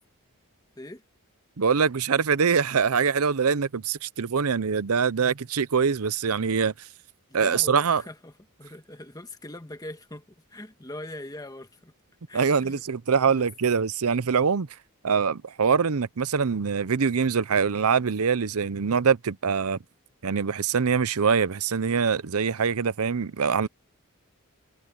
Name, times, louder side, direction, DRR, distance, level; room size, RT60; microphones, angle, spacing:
voice 1, 1.6-6.9 7.3-8.0 12.3-14.7 15.0-19.8 20.2-23.7, right 6 dB, 80° right, 0.7 m, -24 dB
voice 2, 7.3-8.3 8.6-11.9 12.3-12.8 13.3-13.4, left 1 dB, 15° left, 1.6 m, -41 dB
head